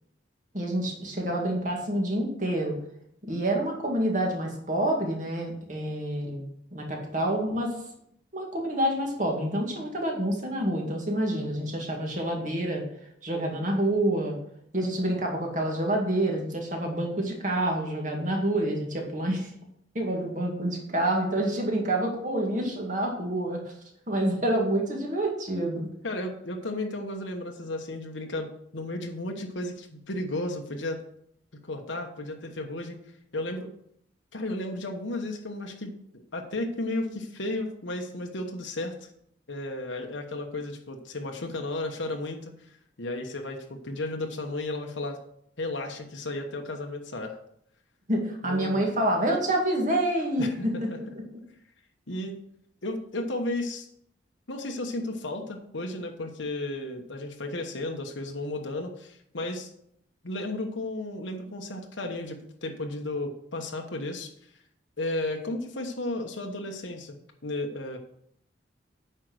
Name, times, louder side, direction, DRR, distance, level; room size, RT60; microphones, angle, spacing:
voice 1, 0.5-2.7 3.2-6.4 6.7-7.8 8.3-12.8 13.2-14.4 14.7-19.5 19.9-23.7 24.1-25.9 48.1-50.9, right 1 dB, 40° right, 0 dB, 2.2 m, -27 dB
voice 2, 11.3-11.7 26.0-31.0 31.7-33.0 33.3-33.7 34.3-35.9 36.3-39.1 39.5-45.2 45.6-47.4 48.4-48.9 50.4-51.0 52.1-52.4 52.8-53.9 54.5-59.7 60.2-64.3 65.0-67.2 67.4-68.0, left 2 dB, 75° left, 3 dB, 1.2 m, -34 dB
9.1 x 5.6 x 6.3 m, 0.71 s
head